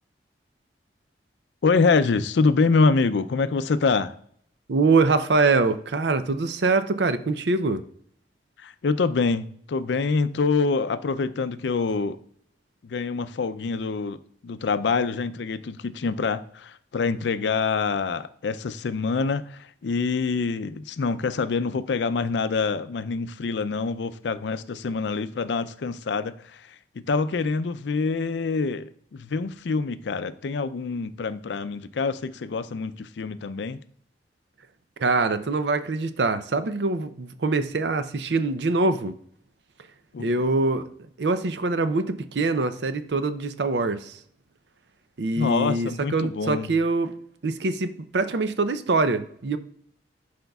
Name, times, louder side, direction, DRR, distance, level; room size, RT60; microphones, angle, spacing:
voice 1, 1.6-4.1 8.6-12.2 12.8-26.7 27.0-33.8 40.1-40.3 45.4-46.7, left 4 dB, 75° left, 0.4 m, -25 dB
voice 2, 4.7-7.8 35.0-39.1 40.2-40.9 41.2-44.2 45.2-47.1 47.4-49.6, right 3 dB, 75° right, 0.6 m, -24 dB
12.0 x 5.1 x 2.3 m
head